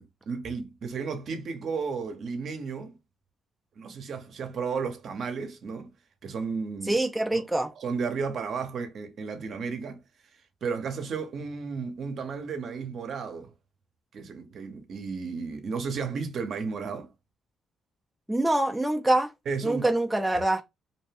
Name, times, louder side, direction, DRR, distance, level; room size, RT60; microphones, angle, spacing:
voice 1, 0.3-2.9 3.8-5.9 6.2-7.0 7.3-7.4 7.8-10.0 10.6-13.5 14.1-17.1 19.5-19.9 20.3-20.4, right 5 dB, 60° right, 0.7 m, -33 dB
voice 2, 6.9-7.7 18.3-19.3 19.6-20.6, right 1 dB, 5° right, 0.4 m, -25 dB
2.6 x 2.2 x 3.2 m
cardioid pair, 95°, 0 cm